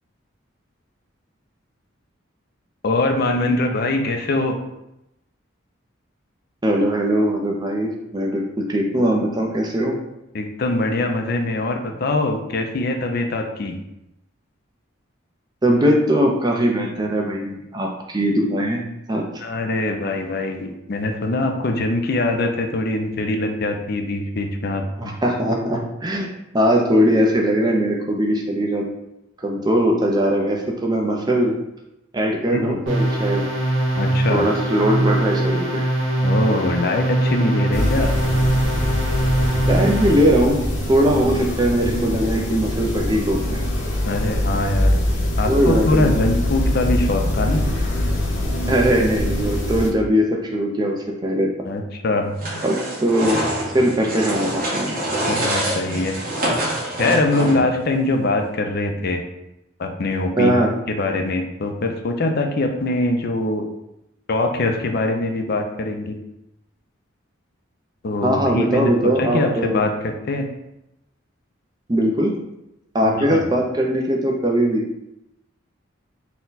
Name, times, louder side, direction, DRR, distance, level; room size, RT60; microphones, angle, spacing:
voice 1, 2.8-4.6 10.3-13.8 19.4-25.1 32.5-32.8 34.0-34.5 36.2-38.1 44.0-45.0 45.4-47.7 51.7-52.3 55.3-56.2 57.0-59.2 59.8-60.5 60.9-63.7 64.3-66.2 68.0-70.4 73.0-73.4, left 2 dB, 50° left, 4 dB, 0.5 m, -23 dB
voice 2, 6.6-9.9 15.6-18.8 19.1-19.3 25.0-28.9 29.4-31.6 32.1-33.5 34.3-35.9 39.6-40.6 40.9-43.6 45.5-46.2 48.6-51.0 51.2-51.5 52.6-53.4 53.7-54.9 60.4-60.7 68.2-69.8 71.9-72.3 72.9-74.8, equal, 20° right, 0 dB, 0.5 m, -20 dB
sound 1, 32.9-40.4, right 1 dB, 70° right, 1.4 m, -22 dB
sound 2, 37.7-49.9, left 1 dB, 65° left, 1.0 m, -23 dB
sound 3, 52.4-57.8, right 1 dB, 45° right, 1.2 m, -25 dB
4.2 x 2.3 x 3.9 m, 0.87 s
head